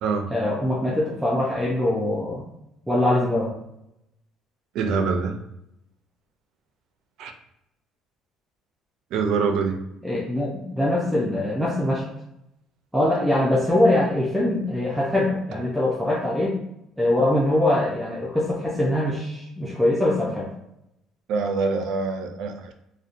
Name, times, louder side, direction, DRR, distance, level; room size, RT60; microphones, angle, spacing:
voice 1, 0.3-2.5 2.9-3.5 10.0-12.0 12.9-16.6 17.0-20.5, left 1 dB, 5° right, -5 dB, 0.4 m, -23 dB
voice 2, 4.7-5.4 7.2-7.3 9.1-9.8 21.3-22.7, right 4 dB, 70° right, 6 dB, 0.3 m, -24 dB
2.6 x 2.1 x 2.5 m, 0.83 s
cardioid pair, 120°, 0 cm